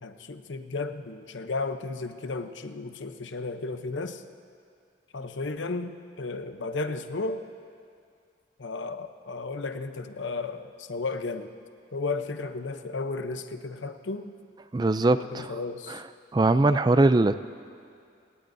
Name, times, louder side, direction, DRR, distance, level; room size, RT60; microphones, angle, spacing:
voice 1, 0.0-4.2 5.1-7.5 8.6-11.5 11.9-14.3 15.1-16.0, left 3 dB, 85° left, 8 dB, 0.8 m, -34 dB
voice 2, 14.7-15.5 16.3-17.3, right 2 dB, 20° right, 12 dB, 0.3 m, -21 dB
28.0 x 17.5 x 2.7 m, 2.3 s
head